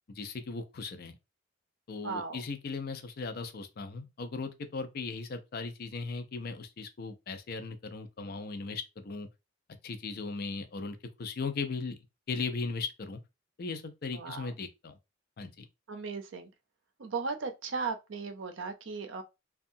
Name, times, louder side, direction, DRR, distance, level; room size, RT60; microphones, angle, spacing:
voice 1, 0.1-1.2 1.9-9.3 9.8-12.0 12.3-13.2 13.6-15.0 15.4-15.7, left 4 dB, 50° left, 0.4 m, -37 dB
voice 2, 2.0-2.4 14.1-14.5 15.9-16.5 17.0-19.2, right 4 dB, 70° right, 0.5 m, -36 dB
2.7 x 2.3 x 2.6 m
head